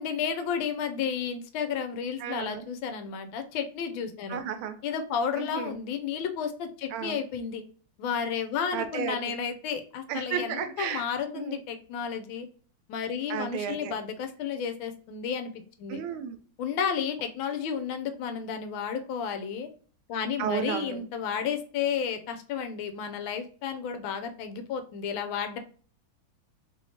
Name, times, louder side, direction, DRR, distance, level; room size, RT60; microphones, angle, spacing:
voice 1, 0.0-4.4 4.8-7.6 8.0-12.5 12.9-15.5 15.8-16.0 16.6-19.7 20.1-25.6, left 7 dB, 75° left, 7 dB, 1.3 m, -32 dB
voice 2, 2.2-2.7 4.3-4.8 5.4-5.7 6.9-7.2 8.7-9.2 10.1-11.0 11.3-11.6 13.3-13.9 15.9-16.4 20.4-21.0, right 8 dB, 85° right, 8 dB, 1.4 m, -33 dB
3.5 x 3.0 x 2.7 m, 0.43 s
omnidirectional pair, 2.3 m